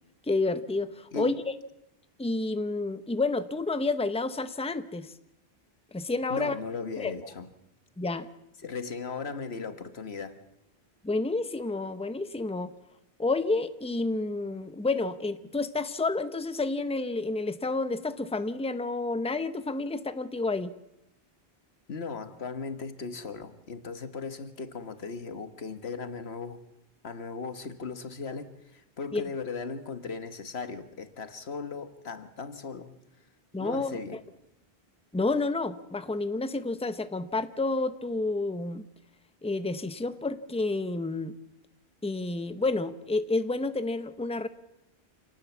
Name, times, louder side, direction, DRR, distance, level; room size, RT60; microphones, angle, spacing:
voice 1, 0.3-1.5 2.2-5.1 5.9-6.5 7.0-7.1 8.0-8.3 11.0-12.7 13.2-20.7 29.1-29.2 33.5-34.0 35.1-38.8 39.4-41.4 42.0-44.5, left 3 dB, 5° left, 11 dB, 0.8 m, -30 dB
voice 2, 1.1-1.4 6.3-7.5 8.6-10.4 21.9-26.6 27.0-33.0 33.6-34.2, left 4 dB, 90° left, 9 dB, 1.7 m, -37 dB
27.0 x 18.5 x 7.2 m, 0.88 s
omnidirectional pair, 1.0 m